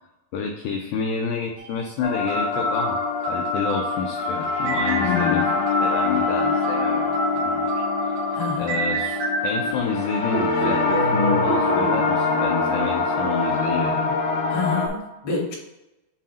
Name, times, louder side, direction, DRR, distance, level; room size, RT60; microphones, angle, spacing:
voice 1, 0.3-5.5 5.8-8.1 8.6-14.2, left 5 dB, 80° left, 2 dB, 2.1 m, -29 dB
sound 1, 1.6-1.7 2.3-9.8 10.3-12.0, right 2 dB, 70° right, 2.1 m, -28 dB
sound 2, 2.0-14.9, left 4 dB, 65° left, 2.4 m, -24 dB
voice 2, 5.0-5.5 8.3-8.8 14.5-15.5, left 5 dB, 40° left, -5 dB, 1.5 m, -28 dB
7.3 x 2.7 x 5.4 m, 0.97 s
omnidirectional pair, 4.6 m